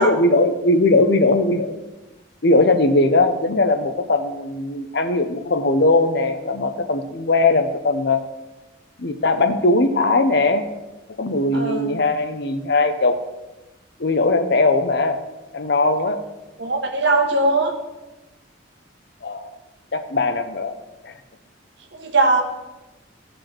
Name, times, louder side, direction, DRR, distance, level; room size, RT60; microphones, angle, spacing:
voice 1, 0.0-1.8 2.4-8.2 9.0-10.7 11.2-13.2 14.0-15.2 15.5-16.2 19.2-19.5 19.9-20.8 21.0-21.1, left 2 dB, 60° left, 8 dB, 0.8 m, -19 dB
voice 2, 11.5-12.0 16.6-17.7 21.9-22.4, right 2 dB, 65° right, 3 dB, 1.4 m, -20 dB
15.0 x 5.3 x 4.4 m, 1.1 s
head